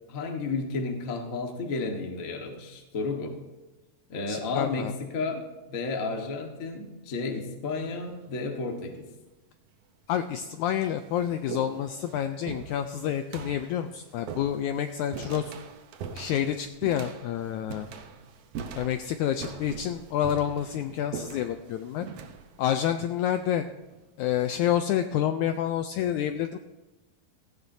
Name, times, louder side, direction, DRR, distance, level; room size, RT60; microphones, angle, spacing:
voice 1, 0.1-3.3 4.1-5.4 5.7-9.1, left 3 dB, 50° left, 3 dB, 1.0 m, -32 dB
voice 2, 4.3-4.9 10.1-15.5 16.1-17.9 18.7-22.1 22.6-23.6 24.2-26.6, left 10 dB, 85° left, 8 dB, 1.7 m, -28 dB
sound 1, 7.7-8.1 9.1-9.2 10.0-10.1 10.5-24.0, right 6 dB, 80° right, 1.4 m, -42 dB
16.5 x 16.0 x 2.7 m, 1.1 s
omnidirectional pair, 4.0 m